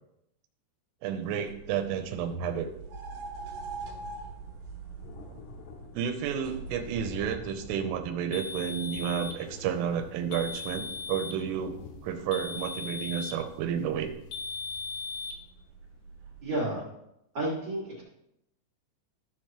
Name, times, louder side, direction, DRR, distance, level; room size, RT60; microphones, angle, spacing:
voice 1, 1.0-2.7 5.9-11.8 12.0-14.1, right 8 dB, 90° right, 6 dB, 3.3 m, -31 dB
sound 1, 1.1-16.8, right 3 dB, 65° right, 3.0 m, -46 dB
Thunder, 2.6-2.7 2.9-15.5 16.0-16.1 16.4-16.5, left 5 dB, 85° left, 3.9 m, -49 dB
sound 2, 8.3-9.4 10.3-11.4 12.3-13.5 14.3-15.4, left 4 dB, 70° left, 2.6 m, -38 dB
voice 2, 16.4-16.8 17.3-18.0, right 1 dB, 45° right, -5 dB, 2.1 m, -31 dB
14.5 x 6.6 x 3.0 m, 0.81 s
omnidirectional pair, 5.8 m